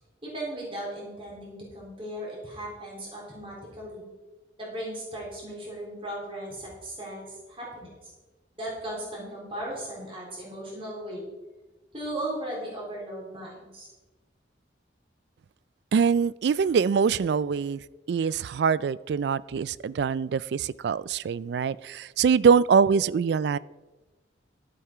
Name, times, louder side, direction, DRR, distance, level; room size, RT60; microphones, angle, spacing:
voice 1, 0.2-4.1 4.6-8.1 8.6-11.2 11.9-13.9, right 1 dB, 30° right, -4 dB, 4.2 m, -37 dB
voice 2, 15.9-17.8 18.1-23.6, right 6 dB, 60° right, 20 dB, 0.3 m, -23 dB
12.0 x 8.6 x 4.6 m, 1.2 s
head